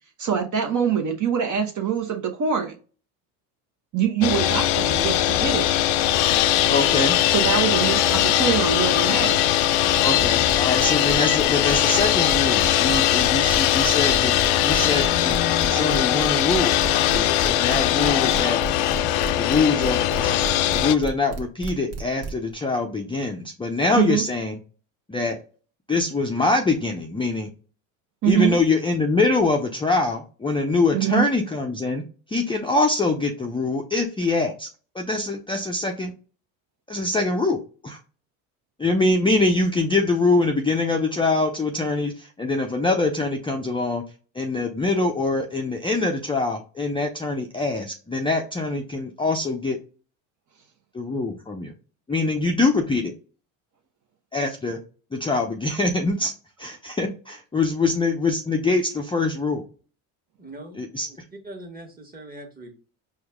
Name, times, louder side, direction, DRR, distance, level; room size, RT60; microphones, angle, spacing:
voice 1, 0.2-2.8 3.9-5.7 7.3-9.4 23.9-24.2 28.2-28.6 30.9-31.3, right 8 dB, 45° right, 3 dB, 0.8 m, -24 dB
sound 1, 4.2-20.9, left 12 dB, 70° left, 0.5 m, -20 dB
voice 2, 6.7-7.2 10.0-16.8 17.1-18.6 19.4-20.4 20.7-24.5 25.1-25.4 25.9-27.5 28.3-32.0 32.3-34.7 34.9-36.1 36.9-38.0 38.8-44.0 44.4-49.8 50.9-51.7 52.1-53.1 54.3-54.8 55.1-56.3 56.6-59.6 60.8-61.1, left 3 dB, 10° left, 1 dB, 0.5 m, -24 dB
sound 2, 9.9-22.5, right 3 dB, 70° right, 1.2 m, -33 dB
voice 3, 60.4-61.2 61.4-62.8, right 1 dB, 20° right, 2 dB, 1.3 m, -41 dB
4.5 x 2.3 x 3.4 m, 0.37 s
supercardioid pair, 85°, 44 cm